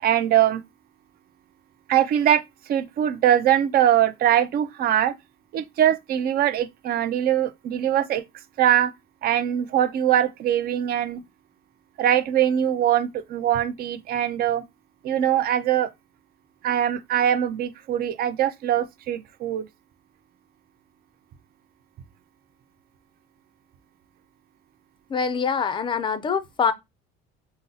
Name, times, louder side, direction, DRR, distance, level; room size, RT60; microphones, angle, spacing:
voice 1, 0.0-0.6 1.9-2.4 2.7-5.1 5.5-8.2 8.6-8.9 9.2-11.2 12.0-14.6 15.0-15.9 16.6-19.7, right 10 dB, 45° right, 0.4 m, -22 dB
voice 2, 25.1-26.7, left 6 dB, 25° left, 0.4 m, -24 dB
2.7 x 2.0 x 3.8 m
cardioid pair, 140°, 21 cm